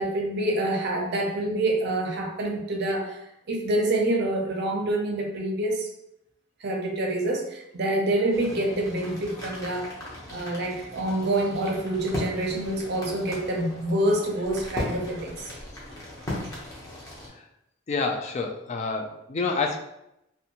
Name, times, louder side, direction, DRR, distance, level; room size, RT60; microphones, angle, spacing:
voice 1, 0.0-3.2 3.5-5.9 6.6-9.9 10.3-15.5, right 1 dB, 55° right, 1 dB, 0.5 m, -27 dB
sound 1, 8.3-17.3, left 1 dB, 15° left, 0.7 m, -38 dB
voice 2, 17.9-19.8, left 4 dB, 35° left, 3 dB, 0.3 m, -28 dB
2.6 x 2.2 x 2.8 m, 0.83 s
head